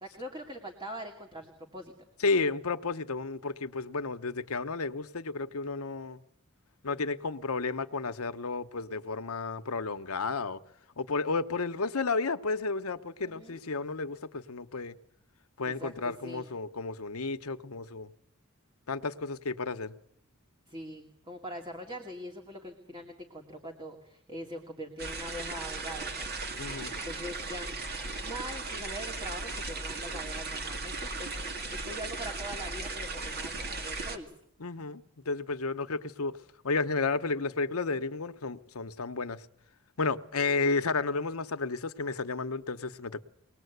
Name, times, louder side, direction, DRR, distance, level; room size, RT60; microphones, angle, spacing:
voice 1, 0.0-2.1 13.2-13.6 15.6-16.5 20.7-27.8 28.2-34.4, equal, 25° right, 2.2 m, -43 dB
voice 2, 2.2-6.2 6.8-10.6 11.0-14.9 15.6-18.1 18.9-19.9 26.6-27.0 34.6-36.3 36.6-39.4 40.0-43.2, left 4 dB, 80° left, 1.0 m, -32 dB
sound 1, 25.0-34.2, right 3 dB, 45° right, 2.2 m, -37 dB
23.5 x 19.5 x 8.1 m
head